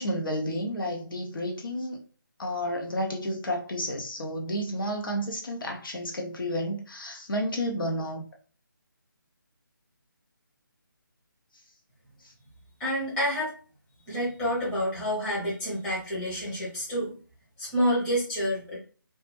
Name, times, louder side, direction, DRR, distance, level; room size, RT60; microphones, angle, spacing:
voice 1, 0.0-2.0 2.4-8.2 12.2-12.3, equal, 75° left, 0.8 m, -31 dB
voice 2, 12.8-13.5 14.1-17.1 17.6-18.8, equal, 5° left, 0.6 m, -28 dB
2.2 x 2.1 x 3.2 m
figure-of-eight pair, 165°, 11 cm